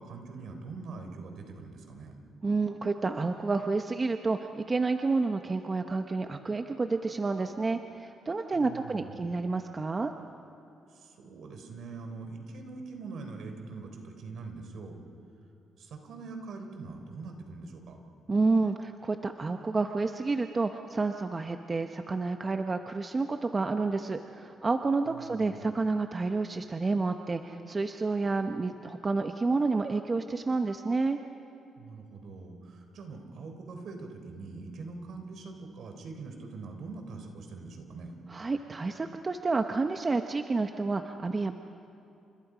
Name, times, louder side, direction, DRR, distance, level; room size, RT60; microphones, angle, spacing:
voice 1, 0.0-2.2 8.5-9.2 10.9-15.0 15.8-18.0 25.1-25.6 31.8-38.1, right 3 dB, 65° right, 4 dB, 3.8 m, -43 dB
voice 2, 2.4-10.1 18.3-31.2 38.3-41.5, right 3 dB, 30° right, 6 dB, 0.9 m, -29 dB
30.0 x 27.0 x 5.1 m, 2.7 s
cardioid pair, 90°, 0 cm